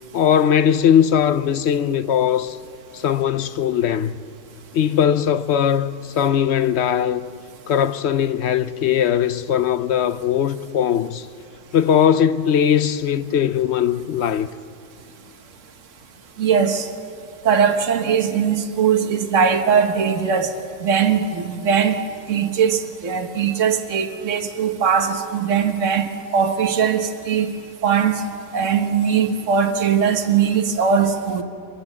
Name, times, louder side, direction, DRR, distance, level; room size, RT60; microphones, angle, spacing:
voice 1, 0.1-2.6 2.9-4.1 4.7-7.3 7.7-11.3 11.7-14.5, left 9 dB, 55° left, 0.9 m, -19 dB
voice 2, 16.4-16.9 17.4-20.5 20.8-22.0 22.3-27.5 27.8-28.2 28.5-31.4, right 7 dB, 55° right, 1.7 m, -20 dB
26.5 x 22.5 x 7.4 m
omnidirectional pair, 1.6 m